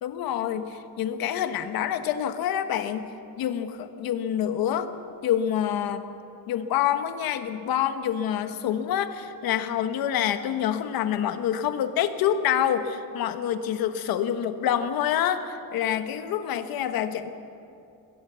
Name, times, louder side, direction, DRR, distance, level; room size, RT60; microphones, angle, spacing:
voice 1, 0.0-3.1 3.4-4.9 5.2-6.1 6.5-17.3, left 10 dB, 75° left, 9 dB, 1.3 m, -27 dB
22.0 x 18.0 x 6.9 m, 2.6 s
cardioid pair, 175°, 36 cm